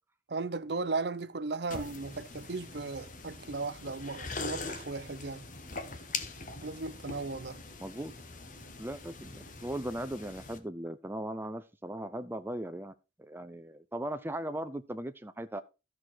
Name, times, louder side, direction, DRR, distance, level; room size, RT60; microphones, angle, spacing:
voice 1, 0.3-5.5 6.6-7.6, right 3 dB, 60° right, 0.7 m, -36 dB
sound 1, 1.7-10.6, left 4 dB, 45° left, 1.3 m, -43 dB
voice 2, 7.8-8.1 8.8-12.9 13.2-15.6, right 1 dB, 10° right, 0.6 m, -38 dB
13.5 x 6.3 x 4.4 m
head